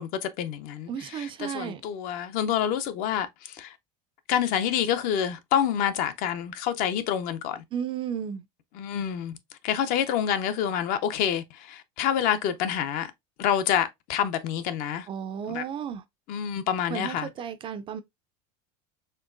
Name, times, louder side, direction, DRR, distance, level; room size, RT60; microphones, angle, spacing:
voice 1, 0.0-3.8 4.3-7.6 8.7-9.3 9.6-13.1 13.4-15.1 15.5-15.6 16.3-17.3, left 9 dB, 50° left, 0.6 m, -27 dB
voice 2, 0.9-1.8 7.7-8.5 15.1-16.0 16.9-18.0, right 8 dB, 30° right, 0.4 m, -33 dB
4.5 x 3.0 x 2.4 m
supercardioid pair, 140°, 19 cm